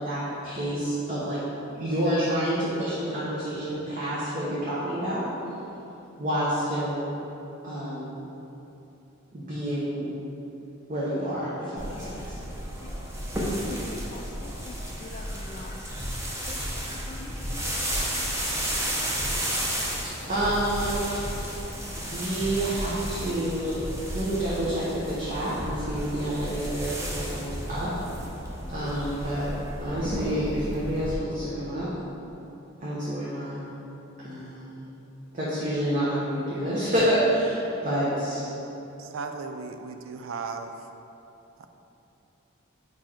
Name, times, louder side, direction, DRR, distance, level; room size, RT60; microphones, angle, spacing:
voice 1, 0.0-1.4 1.8-5.2 6.2-7.1 7.6-8.2 9.3-10.1 10.9-12.4 20.3-21.2 22.0-23.8 24.1-26.9 27.3-27.9 28.7-29.5 29.8-31.9 32.8-33.6 34.2-34.9 35.3-38.5, right 1 dB, 40° right, -9 dB, 1.0 m, -28 dB
sound 1, 11.8-31.1, equal, 15° right, 0.7 m, -32 dB
voice 2, 13.5-15.9 16.5-16.7 17.1-17.7, left 3 dB, 35° left, 4 dB, 0.3 m, -44 dB
voice 3, 39.0-40.9 41.6-41.7, right 4 dB, 80° right, 6 dB, 0.4 m, -36 dB
4.9 x 4.6 x 4.4 m, 3.0 s
head